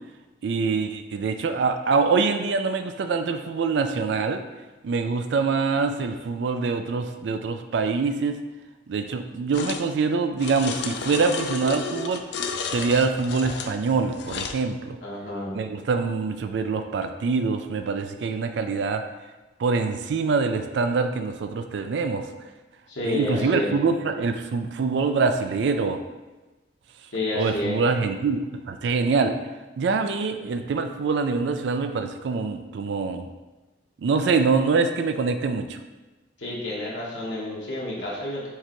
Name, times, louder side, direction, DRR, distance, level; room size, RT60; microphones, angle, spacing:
voice 1, 0.4-4.4 4.8-8.4 8.9-12.2 12.7-15.0 15.5-19.0 19.6-22.3 23.0-26.0 27.4-29.3 29.8-33.3 34.0-35.8, right 4 dB, 70° right, 7 dB, 0.3 m, -24 dB
sound 1, 9.5-9.9 10.4-14.6, left 5 dB, 65° left, 0.4 m, -32 dB
voice 2, 15.0-15.5 22.9-23.8 27.1-27.8 36.4-38.5, left 1 dB, 80° left, -5 dB, 1.1 m, -29 dB
4.7 x 3.3 x 3.0 m, 1.1 s
head